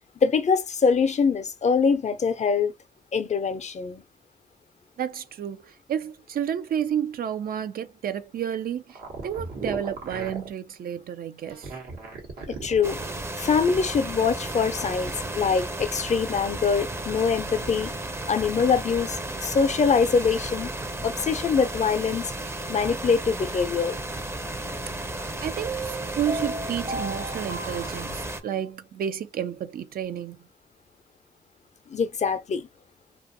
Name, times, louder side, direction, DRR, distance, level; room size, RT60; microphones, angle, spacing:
voice 1, 0.2-2.7 3.1-4.0 12.5-13.0 13.4-17.9 18.3-20.7 21.0-22.3 22.7-23.9 31.9-32.7, left 5 dB, 50° left, 0.5 m, -24 dB
voice 2, 5.0-11.7 24.9-25.0 25.4-30.5, right 9 dB, 75° right, 0.4 m, -31 dB
sound 1, 8.9-10.5 11.4-13.2, right 4 dB, 90° right, 1.0 m, -37 dB
sound 2, 12.8-28.4, right 1 dB, 15° right, 0.5 m, -34 dB
sound 3, 21.2-21.5 25.7-28.7, right 2 dB, 55° right, 0.9 m, -36 dB
2.5 x 2.3 x 2.6 m
cardioid pair, 60°, 15 cm